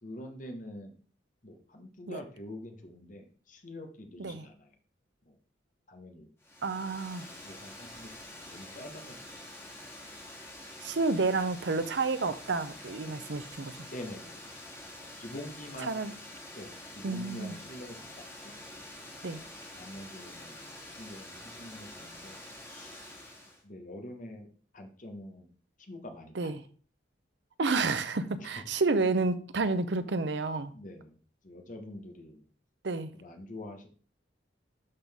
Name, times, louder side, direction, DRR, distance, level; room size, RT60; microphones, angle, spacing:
voice 1, 0.0-0.9 1.4-4.7 5.2-5.4 5.9-6.3 7.4-9.2 13.2-13.3 13.9-14.5 15.2-15.9 16.5-18.1 18.4-18.5 19.7-22.4 22.6-23.0 23.6-24.5 24.7-25.5 25.8-26.5 28.4-28.6 30.7-31.2 31.4-32.4 33.1-33.9, left 1 dB, 45° left, 1.3 m, -45 dB
Water, 6.4-23.6, left 1 dB, 15° left, 2.0 m, -47 dB
voice 2, 6.6-7.3 10.8-13.9 15.9-16.1 17.0-17.6 19.2-19.4 26.4-26.6 27.6-30.7 32.8-33.1, right 3 dB, 65° right, 0.7 m, -30 dB
12.0 x 4.1 x 3.5 m
head